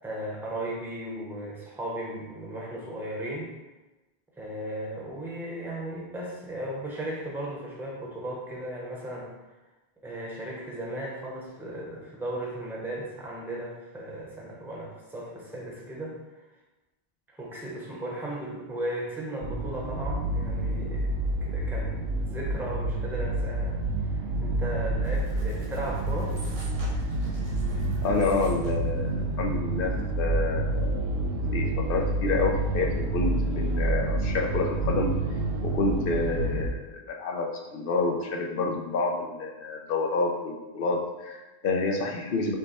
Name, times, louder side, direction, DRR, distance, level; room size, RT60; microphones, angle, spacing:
voice 1, 0.0-3.5 4.4-9.3 10.0-16.2 17.3-21.1 21.4-22.0 22.3-23.8 24.1-26.3, right 1 dB, ahead, -3 dB, 0.7 m, -36 dB
sound 1, 19.4-36.7, right 2 dB, 80° right, 0.8 m, -28 dB
sound 2, 25.0-28.9, right 1 dB, 40° right, 0.7 m, -46 dB
voice 2, 28.0-31.2 31.5-35.1 35.6-42.6, left 3 dB, 65° left, 1 dB, 0.8 m, -28 dB
5.2 x 2.2 x 4.0 m, 1.1 s
omnidirectional pair, 1.1 m